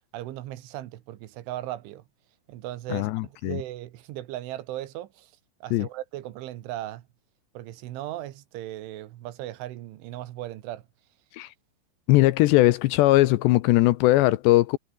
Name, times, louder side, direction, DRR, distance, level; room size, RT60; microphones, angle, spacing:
voice 1, 0.1-2.0 2.5-5.3 5.6-7.1 7.6-10.8, right 14 dB, 85° right, 3.9 m, -37 dB
voice 2, 2.9-3.6 5.7-5.9 11.3-11.5 12.1-14.8, left 18 dB, 80° left, 2.7 m, -20 dB
omnidirectional pair, 5.4 m